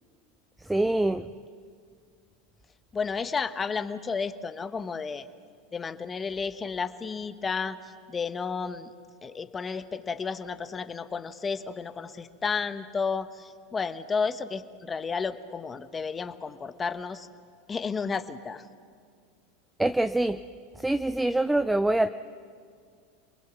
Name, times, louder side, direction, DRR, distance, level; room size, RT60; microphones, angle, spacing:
voice 1, 0.7-1.3 19.8-20.4 20.8-22.1, right 1 dB, 5° right, 12 dB, 0.5 m, -24 dB
voice 2, 2.9-5.3 5.7-8.9 9.2-17.3 17.7-18.6, left 5 dB, 20° left, 11 dB, 1.1 m, -32 dB
27.0 x 20.0 x 7.2 m, 2.1 s
supercardioid pair, 120°, 0 cm